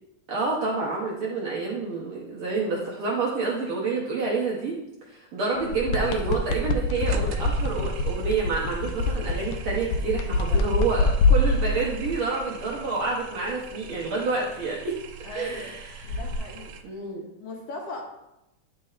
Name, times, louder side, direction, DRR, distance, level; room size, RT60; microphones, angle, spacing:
voice 1, 0.3-4.8 5.0-15.0 15.3-16.2 16.8-17.2, right 3 dB, 65° right, -3 dB, 1.4 m, -28 dB
sound 1, 5.6-12.2 16.0-16.4, left 2 dB, 85° left, 2.1 m, -25 dB
sound 2, 6.0-16.8, right 6 dB, 80° right, 1.9 m, -43 dB
voice 2, 10.2-10.7 15.2-15.8 16.1-16.8 17.4-18.0, left 3 dB, 65° left, 0 dB, 1.8 m, -39 dB
9.8 x 7.2 x 2.5 m, 0.89 s
omnidirectional pair, 3.4 m